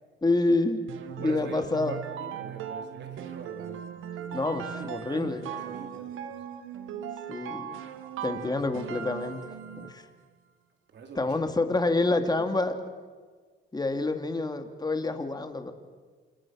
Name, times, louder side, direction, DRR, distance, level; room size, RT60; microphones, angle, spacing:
voice 1, 0.2-0.8 1.2-2.0 4.3-5.5 7.3-7.8 8.2-9.4 9.8-10.1 11.1-12.8 13.7-15.7, left 2 dB, 20° left, 7 dB, 2.8 m, -27 dB
sound 1, 0.9-10.1, right 9 dB, 85° right, 1.7 m, -38 dB
voice 2, 1.2-6.4 8.3-8.6 10.9-11.4 12.4-12.5, right 4 dB, 65° right, 4 dB, 4.6 m, -45 dB
29.5 x 27.0 x 6.6 m, 1.5 s
cardioid pair, 90°, 20 cm